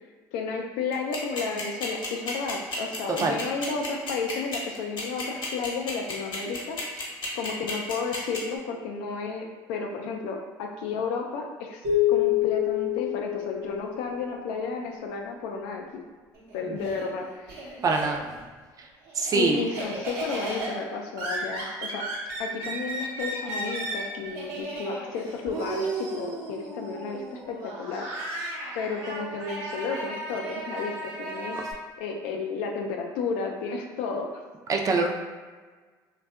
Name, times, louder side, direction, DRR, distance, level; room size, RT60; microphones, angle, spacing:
voice 1, 0.3-6.8 7.3-15.8 16.5-17.8 19.4-22.0 22.4-28.1 28.7-31.6 32.0-34.4, left 4 dB, 75° left, 2 dB, 0.4 m, -32 dB
sound 1, 0.9-8.4, left 3 dB, 50° left, 0.9 m, -33 dB
sound 2, 11.8-14.4, left 13 dB, 60° right, 1.1 m, -26 dB
Laughter, 16.3-18.5 18.8-31.7, right 2 dB, 80° right, 0.8 m, -35 dB
voice 2, 17.8-18.3 18.8-18.9 19.1-19.7 34.7-35.1, right 3 dB, 35° right, 2 dB, 0.3 m, -24 dB
2.6 x 2.2 x 2.3 m, 1.5 s
hypercardioid pair, 70°, 10 cm